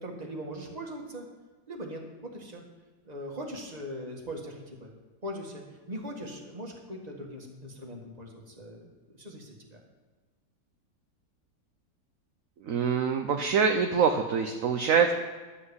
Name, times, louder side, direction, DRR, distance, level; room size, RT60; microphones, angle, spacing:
voice 1, 0.0-1.3 1.7-2.6 3.0-4.9 5.2-9.8, equal, 25° right, 0 dB, 1.9 m, -40 dB
voice 2, 12.7-15.1, right 6 dB, 60° right, 4 dB, 1.1 m, -24 dB
11.5 x 5.8 x 8.0 m, 1.3 s
omnidirectional pair, 1.8 m